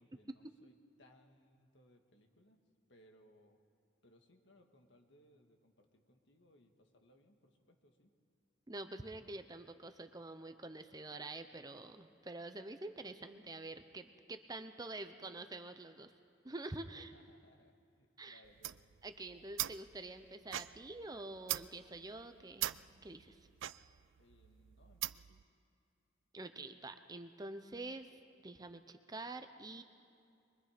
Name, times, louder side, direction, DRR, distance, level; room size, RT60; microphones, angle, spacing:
voice 1, 0.0-2.6 2.9-3.6 4.0-8.1 16.9-18.9 24.2-25.4, left 1 dB, 65° left, 4 dB, 1.8 m, -67 dB
voice 2, 8.7-16.1 16.4-17.1 18.2-18.4 19.0-22.7 23.0-23.4 26.3-28.1 28.4-29.8, right 2 dB, 20° right, 8 dB, 0.7 m, -47 dB
sound 1, 18.4-25.4, right 15 dB, 70° right, 0.4 m, -43 dB
23.5 x 23.0 x 5.1 m, 2.5 s
head